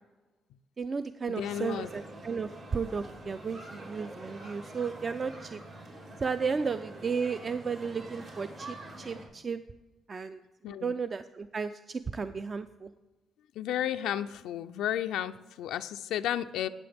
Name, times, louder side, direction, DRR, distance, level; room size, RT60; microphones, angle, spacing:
voice 1, 0.8-5.6 6.2-9.6 10.1-12.9, right 5 dB, 40° right, 11 dB, 0.3 m, -34 dB
voice 2, 1.3-1.9 10.6-10.9 13.6-16.7, left 11 dB, 90° left, 8 dB, 0.3 m, -33 dB
sound 1, 1.3-9.2, right 1 dB, 75° right, 3.1 m, -46 dB
13.5 x 8.5 x 3.5 m, 1.2 s
cardioid pair, 90°, 0 cm